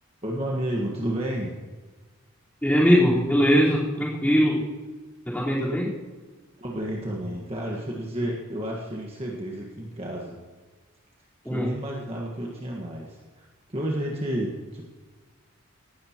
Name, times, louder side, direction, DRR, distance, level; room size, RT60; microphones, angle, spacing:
voice 1, 0.2-1.5 6.6-10.4 11.4-14.8, right 1 dB, 30° right, -2 dB, 1.6 m, -31 dB
voice 2, 2.6-4.7 5.3-5.9 11.4-11.7, equal, 10° left, -6 dB, 4.1 m, -21 dB
18.0 x 13.0 x 3.0 m, 1.3 s
head